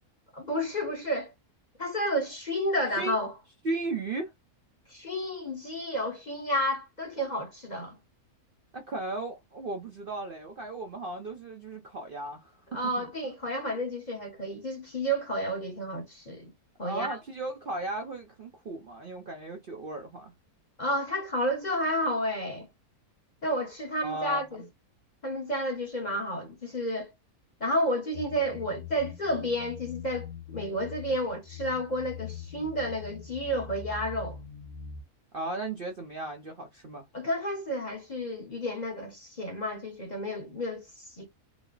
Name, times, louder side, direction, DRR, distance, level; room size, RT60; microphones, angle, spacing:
voice 1, 0.3-1.3 1.8-3.3 4.9-8.0 12.7-16.5 16.8-17.2 20.8-22.7 23.4-24.6 25.2-27.1 27.6-34.4 37.1-41.3, equal, 35° left, 0.9 m, -31 dB
voice 2, 3.6-4.3 8.7-13.3 16.8-20.3 24.0-24.7 35.3-37.1, right 2 dB, 50° right, 0.7 m, -36 dB
sound 1, 28.1-35.0, left 7 dB, 90° left, 1.5 m, -43 dB
4.9 x 2.0 x 3.9 m
omnidirectional pair, 1.6 m